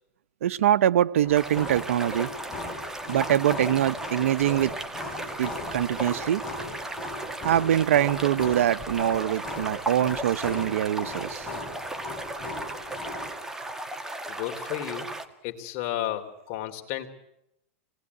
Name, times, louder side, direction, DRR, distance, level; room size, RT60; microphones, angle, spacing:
voice 1, 0.4-2.3 3.1-4.7 5.4-6.4 7.4-11.5, right 11 dB, 80° right, 13 dB, 0.9 m, -24 dB
sound 1, 1.2-13.3, left 2 dB, 10° left, 5.9 m, -39 dB
sound 2, 1.3-15.3, right 2 dB, 5° right, 1.8 m, -36 dB
voice 2, 14.3-15.1 15.4-17.1, left 12 dB, 50° left, 5 dB, 3.3 m, -32 dB
26.5 x 19.5 x 9.7 m, 0.84 s
supercardioid pair, 135°, 7 cm